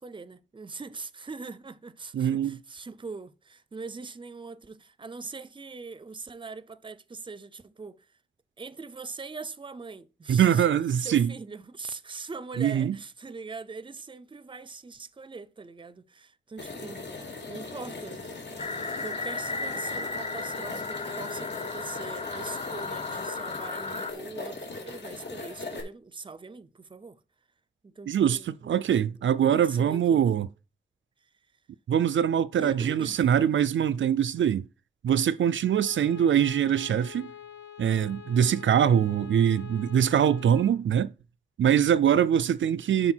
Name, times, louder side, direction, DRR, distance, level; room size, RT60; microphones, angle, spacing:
voice 1, 0.0-8.1 8.6-10.6 11.0-27.2 27.8-30.4 32.6-33.2, right 4 dB, 25° right, 0.5 m, -42 dB
voice 2, 2.1-2.6 10.3-11.3 12.6-13.0 28.1-30.5 31.9-34.7 35.0-37.3 37.8-41.1 41.6-43.1, right 9 dB, 80° right, 0.4 m, -23 dB
sound 1, 16.6-25.8, left 3 dB, 65° left, 2.3 m, -40 dB
sound 2, 18.6-24.1, left 3 dB, 35° left, 0.7 m, -35 dB
Bowed string instrument, 35.6-40.8, left 9 dB, 80° left, 1.3 m, -46 dB
9.7 x 5.1 x 4.5 m
wide cardioid pair, 130°, 19 cm